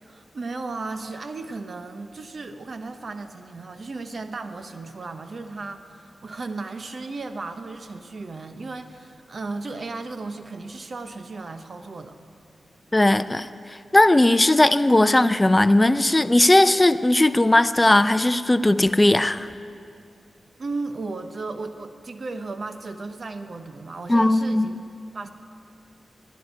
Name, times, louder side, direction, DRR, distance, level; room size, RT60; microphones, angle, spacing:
voice 1, 0.0-12.2 20.6-24.7 25.1-25.3, right 3 dB, 55° right, 8 dB, 0.9 m, -35 dB
voice 2, 12.9-13.5 13.9-19.5 24.1-24.7, left 1 dB, 20° left, 12 dB, 0.5 m, -18 dB
11.5 x 9.4 x 9.5 m, 2.3 s
cardioid pair, 55°, 0 cm